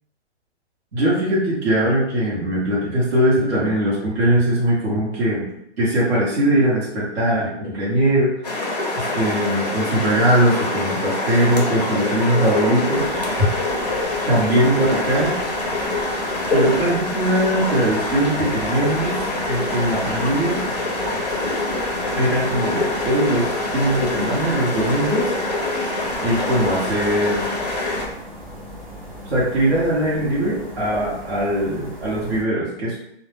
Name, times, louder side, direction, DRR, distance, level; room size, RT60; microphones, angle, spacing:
voice 1, 0.9-5.5 5.8-8.3 9.0-13.5 14.3-15.3 15.9-16.0 16.5-19.2 19.5-20.6 22.1-25.3 26.2-27.8 29.3-33.0, right 1 dB, 60° right, -7 dB, 1.0 m, -20 dB
sound 1, 8.4-28.0, left 2 dB, 35° left, 0.4 m, -25 dB
sound 2, 12.9-32.4, equal, 30° right, 0.6 m, -38 dB
2.2 x 2.1 x 3.2 m, 0.79 s
hypercardioid pair, 175°, 35 cm